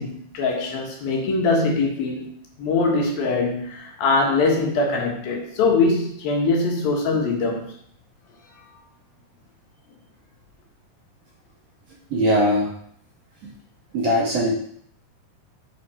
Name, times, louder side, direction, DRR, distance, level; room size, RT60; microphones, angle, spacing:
voice 1, 0.0-2.3 2.6-7.7, left 3 dB, 70° left, 0 dB, 3.4 m, -22 dB
voice 2, 12.1-12.7 13.9-14.5, equal, 50° right, -4 dB, 2.6 m, -20 dB
8.5 x 5.8 x 5.0 m, 0.64 s
omnidirectional pair, 4.4 m